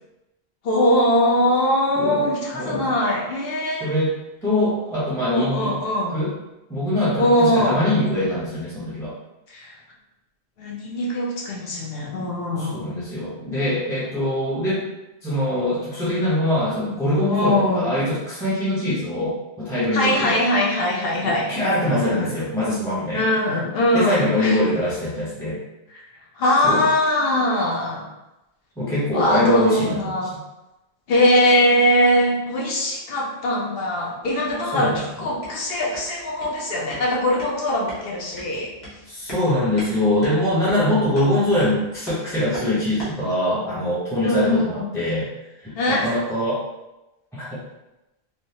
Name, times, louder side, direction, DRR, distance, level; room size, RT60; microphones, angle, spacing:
voice 1, 0.6-3.9 5.3-6.2 7.2-7.8 9.5-9.8 10.6-12.8 17.3-17.9 19.9-22.3 23.1-24.6 25.9-26.0 26.4-28.0 29.1-30.3 31.1-38.7 44.2-44.9 45.7-46.1, left 1 dB, 65° left, -3 dB, 0.9 m, -21 dB
voice 2, 2.5-2.9 3.8-4.2 4.4-5.7 6.1-6.3 6.7-9.1 12.6-14.8 15.2-20.4 21.2-23.3 23.9-25.6 26.6-26.9 28.8-30.3 34.7-35.0 39.1-45.3 45.6-46.6 47.3-47.5, left 1 dB, 5° left, -10 dB, 0.6 m, -23 dB
sound 1, 34.2-43.3, equal, 25° left, 1.0 m, -41 dB
3.3 x 2.1 x 2.7 m, 0.98 s
omnidirectional pair, 1.1 m